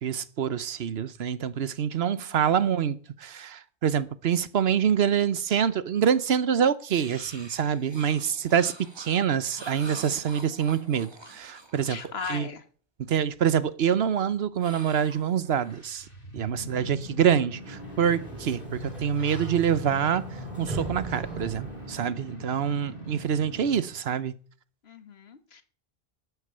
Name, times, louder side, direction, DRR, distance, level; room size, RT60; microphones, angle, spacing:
voice 1, 0.0-12.0 12.3-12.5 13.0-16.1 16.3-20.3 20.6-24.4, right 8 dB, 75° right, 1.1 m, -26 dB
sound 1, 6.9-12.5 14.6-15.8, right 2 dB, 25° right, 1.7 m, -46 dB
voice 2, 11.9-12.6 16.6-17.1 22.3-22.8 24.8-25.6, left 5 dB, 75° left, 1.6 m, -40 dB
sound 2, 15.3-24.0, equal, 60° left, 3.5 m, -41 dB
Sliding door, 17.5-22.3, right 2 dB, ahead, 7.5 m, -40 dB
12.5 x 8.3 x 6.7 m
omnidirectional pair, 1.0 m